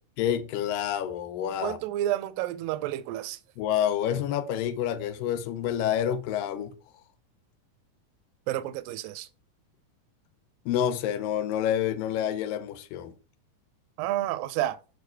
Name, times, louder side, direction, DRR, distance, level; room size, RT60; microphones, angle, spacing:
voice 1, 0.2-1.8 3.6-6.7 10.7-13.1, left 10 dB, 85° left, 2.4 m, -28 dB
voice 2, 1.6-3.4 8.5-9.3 14.0-14.8, right 13 dB, 85° right, 2.3 m, -30 dB
6.9 x 4.6 x 4.5 m
omnidirectional pair, 3.9 m